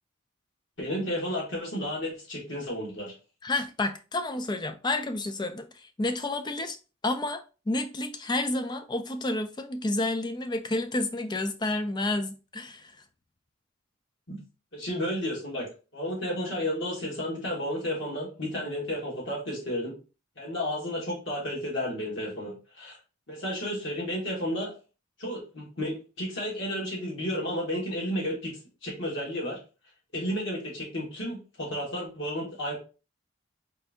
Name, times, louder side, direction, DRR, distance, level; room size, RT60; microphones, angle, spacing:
voice 1, 0.8-3.1 14.3-14.4 14.7-19.9 20.4-23.0 23.3-24.7 25.2-28.5 28.8-29.6 30.1-32.8, equal, 60° left, 1.6 m, -32 dB
voice 2, 3.4-6.8 7.0-13.0, left 2 dB, 20° left, 0.4 m, -30 dB
4.4 x 2.6 x 3.5 m
head